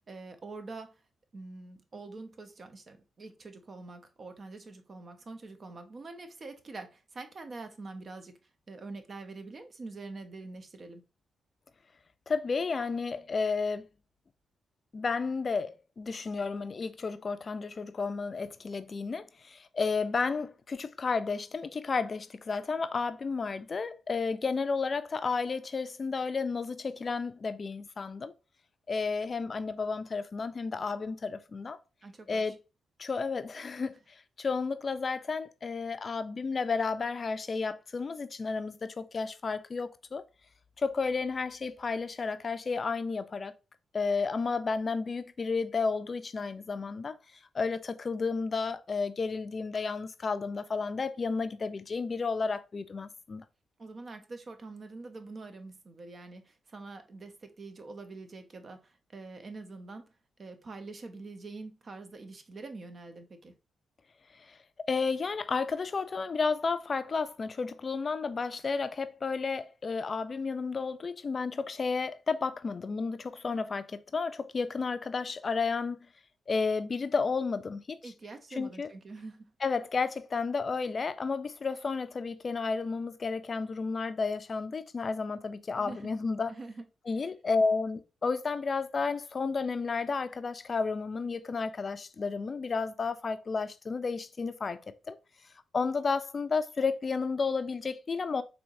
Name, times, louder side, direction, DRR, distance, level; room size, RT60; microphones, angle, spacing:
voice 1, 0.1-1.0 1.3-8.3 8.7-11.0 32.0-32.5 53.8-60.1 60.4-63.5 78.0-79.5 85.7-86.1 86.5-86.8, right 3 dB, 50° right, 0.7 m, -45 dB
voice 2, 12.3-13.8 14.9-28.3 28.9-31.8 32.3-32.6 33.0-34.0 34.4-40.2 40.8-43.5 43.9-47.1 47.5-53.4 64.4-64.6 64.9-76.0 76.5-78.0 78.6-78.9 79.6-86.5 87.1-94.8 95.1-95.2 95.7-98.4, left 4 dB, 45° left, 0.4 m, -32 dB
4.4 x 2.7 x 2.6 m
supercardioid pair, 50°, 0 cm